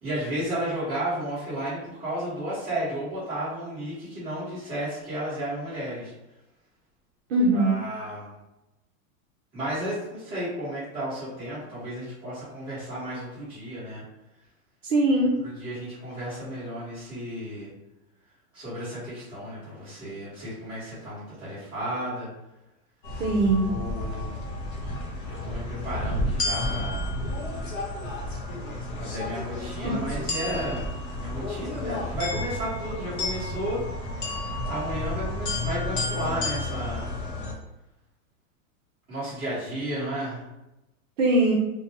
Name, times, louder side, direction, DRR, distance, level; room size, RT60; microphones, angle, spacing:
voice 1, 0.0-6.1 7.5-8.3 9.5-14.0 15.6-17.7 18.5-22.3 23.6-24.3 25.3-27.2 29.0-33.8 34.3-37.2 39.1-40.4, right 1 dB, 10° right, -13 dB, 1.3 m, -33 dB
voice 2, 7.3-7.8 14.8-15.4 23.2-23.7 29.8-29.9 41.2-41.6, right 2 dB, 60° right, -2 dB, 0.7 m, -21 dB
sound 1, 23.0-37.5, left 2 dB, 40° left, 0.5 m, -31 dB
2.7 x 2.2 x 2.8 m, 0.95 s
supercardioid pair, 180°, 42 cm